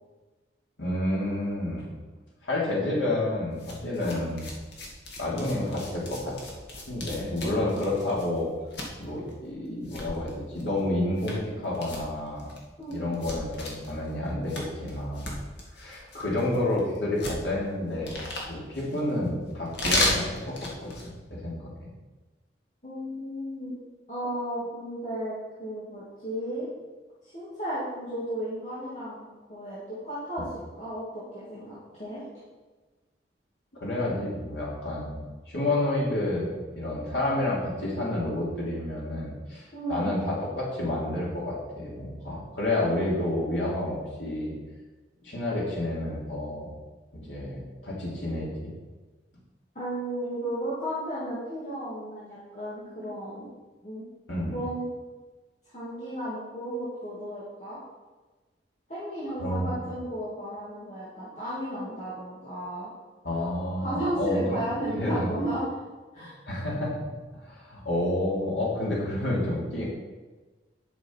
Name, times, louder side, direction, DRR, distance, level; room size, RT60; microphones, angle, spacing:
voice 1, 0.8-1.9 2.4-4.5 5.2-6.3 6.9-8.5 9.0-12.5 12.9-15.3 15.8-18.2 18.5-21.7 33.7-44.6 45.2-46.7 47.1-48.7 54.3-54.5 59.4-59.8 63.2-64.6 64.9-65.3 66.2-67.1 67.3-69.8, left 1 dB, 80° left, -5 dB, 3.0 m, -30 dB
sound 1, 3.5-21.2, left 2 dB, 65° left, 2.2 m, -35 dB
voice 2, 12.8-13.2 22.8-23.7 24.1-26.7 27.2-32.3 39.7-40.1 49.7-53.6 53.8-54.1 54.5-54.9 55.6-57.8 58.9-62.9 63.8-65.8 66.1-66.3, right 1 dB, 40° left, -10 dB, 2.5 m, -34 dB
11.5 x 6.3 x 4.7 m, 1.2 s
head